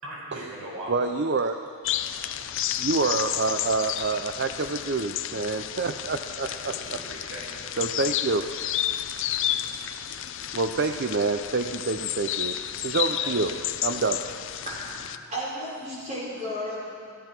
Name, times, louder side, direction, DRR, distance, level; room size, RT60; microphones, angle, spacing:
voice 1, 0.0-1.2 2.1-2.6 6.4-7.7 13.2-13.7, right 1 dB, 75° right, -4 dB, 4.8 m, -41 dB
voice 2, 0.9-1.6 2.8-6.7 7.8-8.5 10.5-12.6 12.8-13.5 13.8-14.2, right 3 dB, 50° right, 7 dB, 0.6 m, -27 dB
sound 1, 1.8-15.2, left 11 dB, 55° left, 0.5 m, -31 dB
voice 3, 14.6-17.1, equal, 30° right, -7 dB, 5.5 m, -34 dB
15.0 x 14.5 x 6.0 m, 2.2 s
head